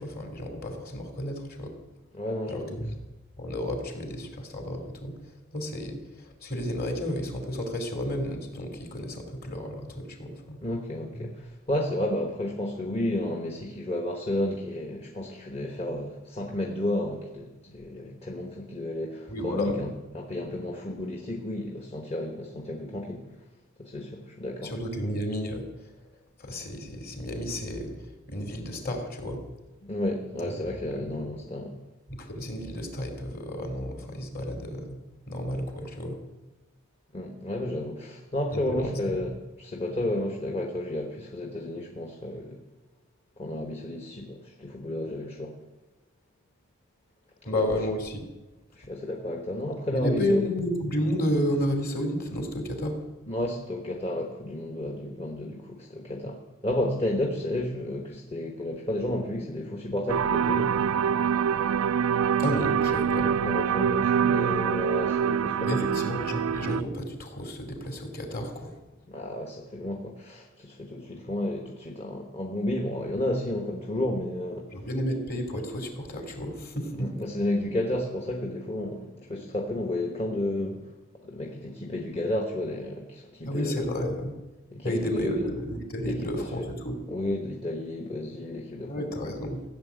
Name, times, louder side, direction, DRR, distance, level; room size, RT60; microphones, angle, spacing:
voice 1, 0.0-1.7 2.5-2.6 3.4-5.1 5.5-6.0 6.4-10.6 19.3-19.7 24.6-25.6 26.4-27.9 28.3-29.4 30.4-30.5 30.9-31.2 32.1-35.0 35.3-36.2 38.5-38.9 47.5-48.2 49.9-53.0 62.4-63.3 65.7-68.7 74.7-77.1 83.4-84.3 84.8-87.0 88.9-89.6, equal, 45° left, 3 dB, 2.7 m, -31 dB
voice 2, 2.1-2.9 10.6-23.4 23.8-24.8 29.8-31.8 37.1-42.6 43.4-45.6 47.5-47.8 48.7-50.4 53.3-60.8 62.7-62.8 63.2-66.1 69.1-74.7 77.0-80.9 81.2-83.9 84.7-85.5 86.0-86.7 87.1-89.4, left 1 dB, 30° left, 2 dB, 1.1 m, -32 dB
sound 1, 60.1-66.8, right 7 dB, 75° right, 0.4 m, -25 dB
15.0 x 7.1 x 9.2 m, 1.1 s
head